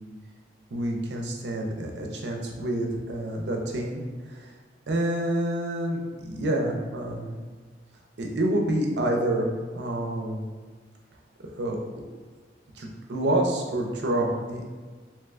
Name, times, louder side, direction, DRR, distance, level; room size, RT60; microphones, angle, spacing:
voice 1, 0.7-4.5 4.9-7.4 8.2-9.5 9.7-10.4 11.5-11.8 12.7-14.6, right 1 dB, 70° right, 1 dB, 0.5 m, -28 dB
3.2 x 2.9 x 2.4 m, 1.4 s
head